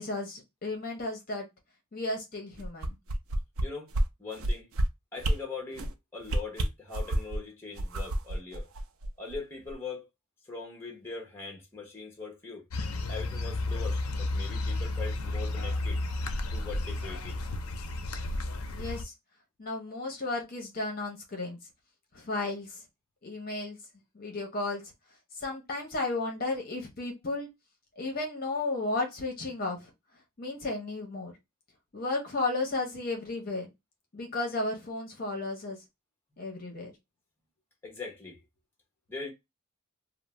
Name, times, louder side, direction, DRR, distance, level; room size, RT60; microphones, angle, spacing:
voice 1, 0.0-1.5 1.9-3.0 18.7-19.1 19.6-21.6 22.1-22.8 23.2-23.8 24.1-24.8 25.3-27.5 28.0-29.9 30.4-31.3 31.9-33.7 34.1-35.8 36.4-36.9, left 2 dB, 40° left, 0.8 m, -33 dB
sound 1, 2.6-3.6 3.9-4.1 4.4-4.8 5.2-5.4 5.7-5.9 6.3-7.4 7.8-9.4 9.7-9.8, right 1 dB, 70° right, 0.5 m, -28 dB
voice 2, 4.2-4.7 5.1-8.7 9.2-10.0 10.5-12.6 13.1-16.0 16.5-17.4 37.8-38.4 39.1-39.3, left 4 dB, 10° left, 0.8 m, -41 dB
sound 2, 12.7-19.0, left 2 dB, 75° left, 0.5 m, -32 dB
2.5 x 2.0 x 3.1 m
head